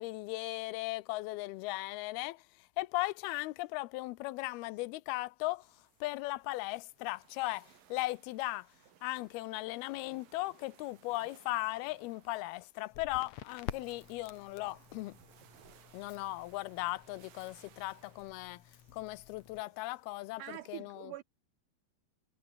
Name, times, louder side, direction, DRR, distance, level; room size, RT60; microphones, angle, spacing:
voice 1, 0.0-2.4 2.8-5.7 6.0-8.7 9.0-15.2 15.9-18.6 18.9-20.4 20.7-21.1, left 20 dB, 90° left, 2.6 m, -37 dB
sound 1, 5.6-20.5, right 10 dB, 65° right, 3.7 m, -64 dB
Crackle, 12.9-19.6, left 11 dB, 60° left, 2.1 m, -50 dB
voice 2, 20.4-21.2, right 13 dB, 85° right, 1.8 m, -44 dB
omnidirectional pair, 4.4 m